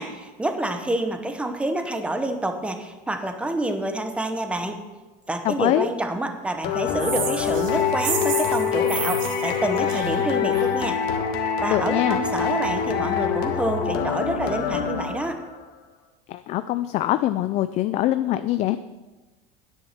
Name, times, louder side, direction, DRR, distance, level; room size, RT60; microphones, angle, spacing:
voice 1, 0.0-4.8 5.3-11.0 11.6-15.4, right 1 dB, 5° right, 7 dB, 1.0 m, -28 dB
voice 2, 5.4-5.9 11.7-12.2 16.3-18.8, left 14 dB, 40° left, 12 dB, 0.4 m, -23 dB
sound 1, 6.6-15.6, left 7 dB, 55° left, 1.4 m, -25 dB
sound 2, 7.0-10.8, right 8 dB, 45° right, 1.4 m, -31 dB
10.0 x 9.9 x 5.9 m, 1.2 s
cardioid pair, 155°, 19 cm